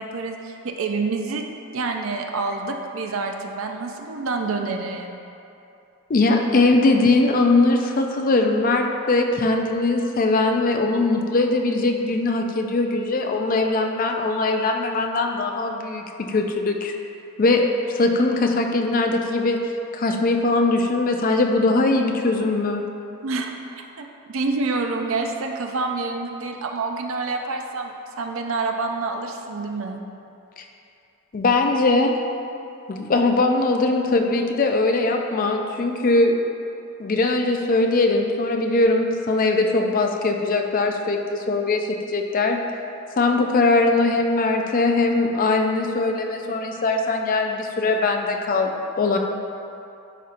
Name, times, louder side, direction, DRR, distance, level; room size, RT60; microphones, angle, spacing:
voice 1, 0.0-1.4 1.7-5.2 23.2-23.5 23.8-30.0, right 3 dB, 65° right, 3 dB, 0.5 m, -27 dB
voice 2, 6.1-16.9 17.4-19.6 19.9-22.8 30.6-30.7 31.3-32.2 32.9-36.3 37.0-42.6 43.2-49.2, left 2 dB, 40° left, 3 dB, 0.4 m, -21 dB
9.9 x 4.2 x 2.5 m, 2.7 s
head